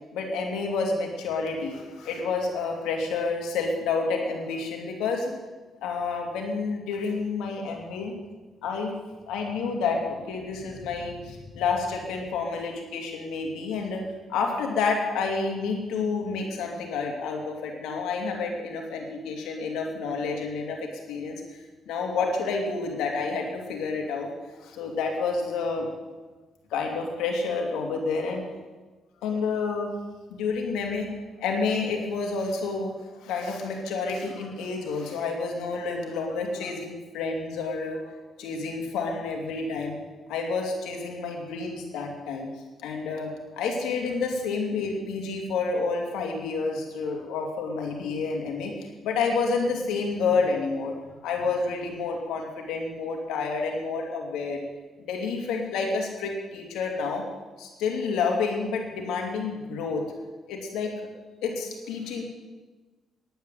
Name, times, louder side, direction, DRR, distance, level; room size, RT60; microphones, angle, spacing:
voice 1, 0.1-5.3 5.8-8.1 8.6-8.9 9.3-14.0 14.3-24.3 24.6-25.9 26.7-28.4 29.2-29.9 30.3-31.1 31.4-32.9 33.2-38.1 38.4-40.0 40.3-42.5 42.8-50.9 51.2-54.6 55.0-57.2 57.6-60.0 60.5-60.9 61.4-62.2, left 4 dB, 90° left, 1 dB, 2.6 m, -29 dB
10.5 x 9.2 x 7.9 m, 1.2 s
cardioid pair, 90°, 0 cm